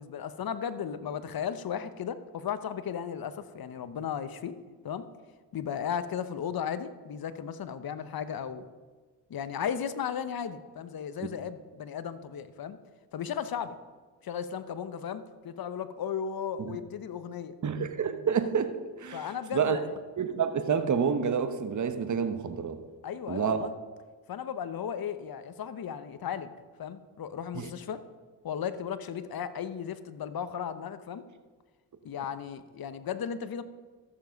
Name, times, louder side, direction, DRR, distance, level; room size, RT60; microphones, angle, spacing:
voice 1, 0.0-4.5 4.8-5.1 5.5-8.7 9.3-12.8 13.1-13.7 14.2-17.5 19.1-19.9 23.0-23.7 24.3-26.5 26.8-28.0 28.4-31.2 32.0-33.6, left 8 dB, 50° left, 13 dB, 0.9 m, -35 dB
voice 2, 17.6-18.7 19.0-19.8 20.2-22.8 23.3-23.6 27.5-27.7, right 6 dB, 40° right, 9 dB, 1.1 m, -28 dB
13.5 x 7.1 x 5.2 m, 1.4 s
cardioid pair, 60°, 45 cm